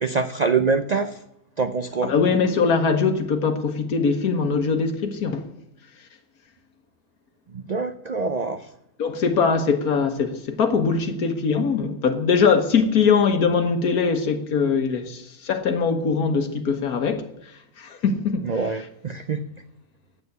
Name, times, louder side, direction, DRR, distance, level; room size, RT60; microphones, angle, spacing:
voice 1, 0.0-1.2 1.6-2.1 7.5-8.7 18.4-19.4, right 4 dB, 85° right, 0.3 m, -25 dB
voice 2, 2.0-5.5 9.0-17.3 17.8-18.5, left 5 dB, 80° left, 1.8 m, -22 dB
9.3 x 8.5 x 9.4 m
omnidirectional pair, 1.6 m